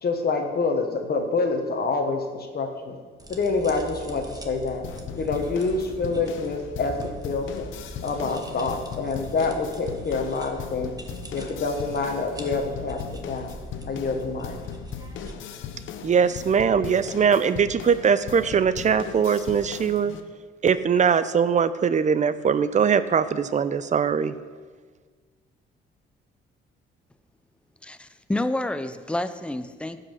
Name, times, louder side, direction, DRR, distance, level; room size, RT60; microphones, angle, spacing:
voice 1, 0.0-3.0 3.3-4.9 5.2-6.9 7.2-7.7 8.0-10.9 11.3-13.6 13.8-14.6, left 4 dB, 50° left, 4 dB, 1.4 m, -27 dB
sound 1, 3.2-15.3, right 2 dB, 20° right, 1.3 m, -42 dB
sound 2, 4.8-20.2, left 7 dB, 80° left, 0.8 m, -38 dB
voice 2, 16.0-20.2 20.6-24.3, right 7 dB, 35° right, 14 dB, 0.6 m, -21 dB
voice 3, 27.8-30.0, left 1 dB, 5° left, 11 dB, 0.6 m, -29 dB
15.0 x 5.6 x 5.5 m, 1.5 s
cardioid pair, 90°, 20 cm